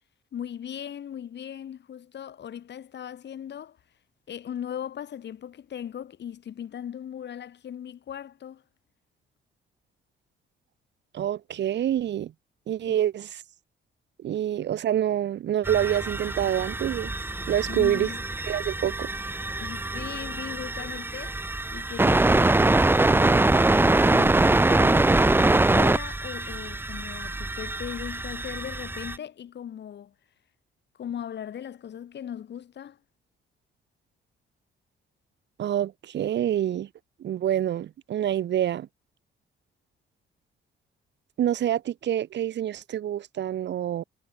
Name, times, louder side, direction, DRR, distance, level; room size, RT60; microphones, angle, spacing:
voice 1, 0.3-3.8 4.3-8.6 12.8-13.0 17.7-18.2 19.6-21.4 21.7-30.1 31.0-33.0, left 9 dB, 60° left, 4.5 m, -38 dB
voice 2, 11.1-12.3 12.7-13.4 14.2-17.1 17.5-18.1 18.5-19.1 35.6-36.9 37.2-38.9 41.4-44.0, right 11 dB, 60° right, 1.1 m, -27 dB
sound 1, 15.6-29.2, right 2 dB, 10° right, 0.8 m, -23 dB
cardioid pair, 90°, 20 cm